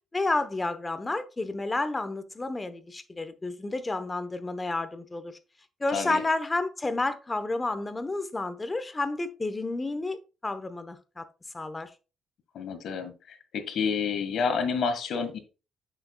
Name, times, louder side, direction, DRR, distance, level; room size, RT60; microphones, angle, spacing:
voice 1, 0.1-5.4 5.8-11.3 11.5-11.9, left 2 dB, 20° left, 1.0 m, -30 dB
voice 2, 12.5-15.4, left 5 dB, 70° left, 1.7 m, -29 dB
8.6 x 6.6 x 2.3 m
cardioid pair, 90°, 0 cm